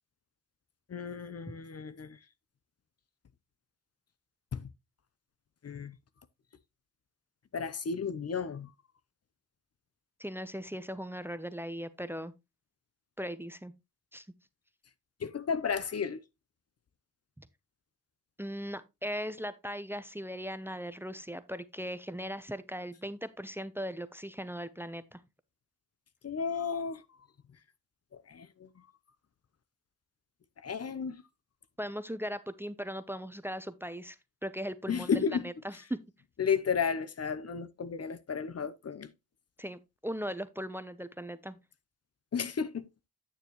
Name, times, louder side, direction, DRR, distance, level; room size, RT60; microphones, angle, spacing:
voice 1, 0.9-2.2 4.5-4.7 5.6-6.0 7.5-8.7 15.2-16.2 26.2-27.0 28.3-28.7 30.6-31.2 34.9-35.5 36.4-39.1 42.3-42.8, left 6 dB, 45° left, 0.8 m, -33 dB
voice 2, 10.2-12.3 13.2-13.7 14.1-14.3 17.4-17.5 18.4-25.2 31.8-36.0 39.6-41.6, equal, 5° right, 0.7 m, -38 dB
9.0 x 6.8 x 3.0 m
supercardioid pair, 55°, 35 cm